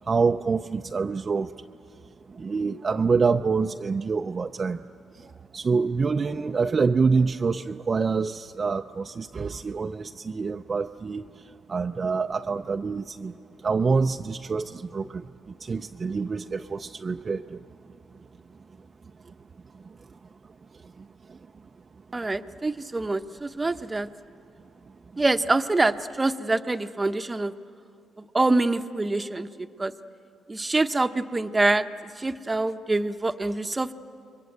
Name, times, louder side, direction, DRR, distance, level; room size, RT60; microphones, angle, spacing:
voice 1, 0.0-1.7 2.3-4.8 5.1-17.7 18.1-18.9 19.2-19.3 19.7-21.5, right 4 dB, 35° right, 5 dB, 0.5 m, -27 dB
voice 2, 22.1-24.1 25.2-27.5 28.2-29.9 30.5-31.9 32.2-34.0, right 2 dB, 20° right, 9 dB, 0.9 m, -25 dB
28.5 x 22.5 x 7.9 m, 2.6 s
cardioid pair, 90°, 0 cm